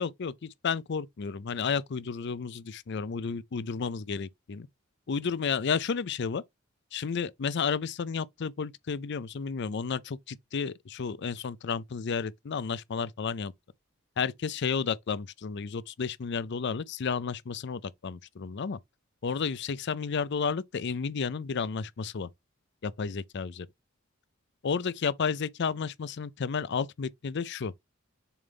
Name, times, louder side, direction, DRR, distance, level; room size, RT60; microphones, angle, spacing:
voice 1, 0.0-4.7 5.1-6.4 6.9-13.5 14.2-18.8 19.2-22.3 22.8-23.7 24.6-27.7, left 5 dB, 55° left, 0.5 m, -32 dB
7.1 x 3.9 x 3.5 m
head